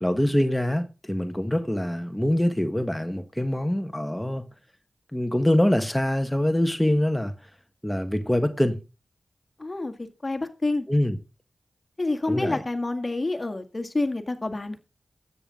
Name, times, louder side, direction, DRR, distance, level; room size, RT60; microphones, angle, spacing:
voice 1, 0.0-4.4 5.1-7.3 7.8-8.8 10.9-11.2 12.3-12.6, left 1 dB, 10° left, 1.5 m, -24 dB
voice 2, 9.6-10.9 12.0-14.8, left 2 dB, 40° left, 1.9 m, -28 dB
13.0 x 9.2 x 3.8 m
cardioid pair, 40°, 0 cm